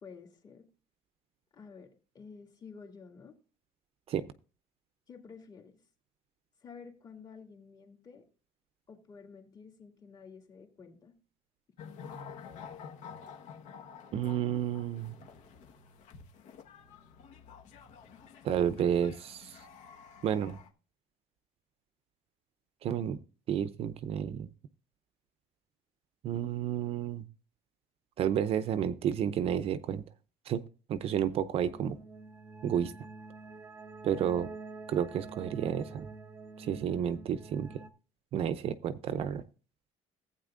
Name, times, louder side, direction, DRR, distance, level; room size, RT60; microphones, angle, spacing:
voice 1, 0.0-0.6 1.5-1.9 2.1-3.4 5.1-5.8 6.6-8.2 8.9-11.1, left 5 dB, 30° left, 3 dB, 2.4 m, -51 dB
sound 1, 11.8-20.7, left 6 dB, 65° left, 1.4 m, -50 dB
voice 2, 14.1-15.1 18.4-19.6 20.2-20.6 22.8-23.2 23.5-24.5 26.2-27.2 28.2-30.0 30.5-30.6 30.9-32.0 32.6-32.9 34.0-34.5 34.9-36.1 36.6-37.7 38.3-39.4, right 9 dB, 45° right, 14 dB, 0.6 m, -31 dB
sound 2, 31.6-37.9, right 3 dB, 15° right, 0.9 m, -47 dB
15.5 x 8.9 x 2.5 m, 0.36 s
cardioid pair, 155°, 14 cm